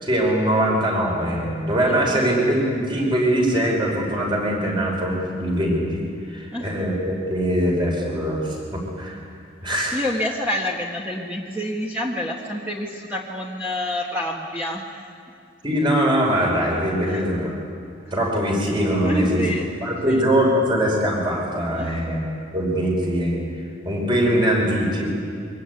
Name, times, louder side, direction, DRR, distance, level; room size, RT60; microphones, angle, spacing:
voice 1, 0.0-6.0 6.3-8.4 8.7-9.2 9.6-10.0 15.6-17.5 18.1-19.4 19.8-22.2 22.5-23.4 23.8-25.1, equal, 25° right, -1 dB, 5.1 m, -22 dB
voice 2, 1.9-2.3 6.5-6.7 9.9-15.1 16.5-16.6 17.0-17.4 19.0-20.2 21.7-22.2, left 1 dB, 10° right, -3 dB, 1.8 m, -28 dB
24.0 x 23.5 x 9.2 m, 2.4 s
head